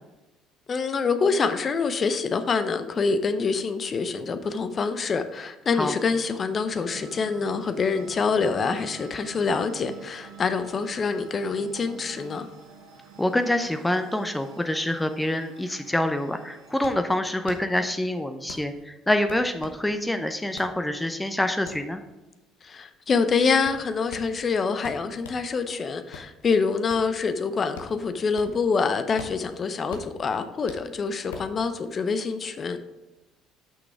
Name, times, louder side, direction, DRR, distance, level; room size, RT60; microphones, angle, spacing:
voice 1, 0.7-12.5 22.6-32.8, left 5 dB, 40° left, 10 dB, 0.8 m, -26 dB
sound 1, 6.5-16.9, right 5 dB, 75° right, 1.2 m, -46 dB
voice 2, 13.2-22.0, left 1 dB, 10° left, 8 dB, 0.7 m, -26 dB
sound 2, 16.7-25.5 25.9-28.7 29.0-31.6, left 5 dB, 80° left, 0.8 m, -45 dB
6.1 x 6.1 x 4.9 m, 1.1 s
hypercardioid pair, 60°, 0 cm